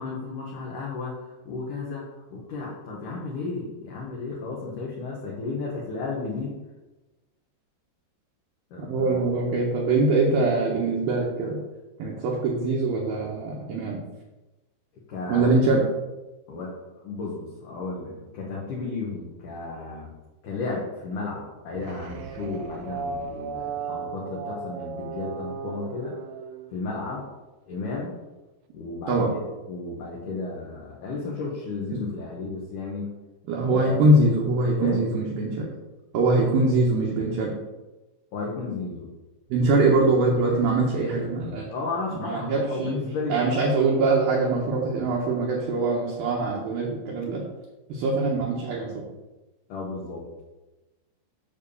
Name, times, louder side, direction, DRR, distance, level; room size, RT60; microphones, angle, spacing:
voice 1, 0.0-2.0 2.3-6.6 8.7-9.2 15.1-15.5 16.5-16.7 17.0-20.1 20.4-26.2 26.7-27.2 27.7-28.1 28.7-33.1 33.6-34.1 34.8-35.0 36.4-36.5 38.3-39.1 41.7-43.4 49.7-50.4, left 3 dB, 70° left, -4 dB, 2.0 m, -33 dB
voice 2, 8.9-11.6 12.0-14.0 15.3-15.8 29.1-29.3 31.9-32.0 33.5-35.7 36.1-37.5 39.5-41.7 42.1-43.0 43.3-47.4 47.9-49.1, right 2 dB, 70° right, -2 dB, 2.4 m, -23 dB
sound 1, 21.7-27.3, right 5 dB, 85° right, 2.5 m, -36 dB
9.3 x 3.6 x 6.9 m, 1.1 s
omnidirectional pair, 5.5 m